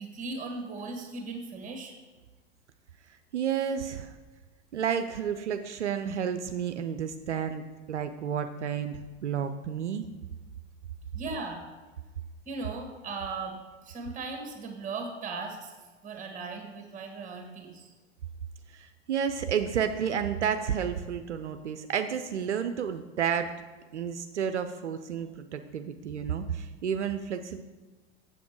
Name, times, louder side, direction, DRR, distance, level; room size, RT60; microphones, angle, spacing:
voice 1, 0.0-1.9 11.1-11.6 12.4-13.6 13.8-15.7 16.0-17.9, right 3 dB, 20° right, 4 dB, 1.6 m, -37 dB
voice 2, 3.3-4.2 4.7-10.1 18.7-23.5 23.9-27.6, right 8 dB, 75° right, 9 dB, 0.5 m, -31 dB
7.3 x 7.1 x 4.6 m, 1.3 s
figure-of-eight pair, 90°, 35 cm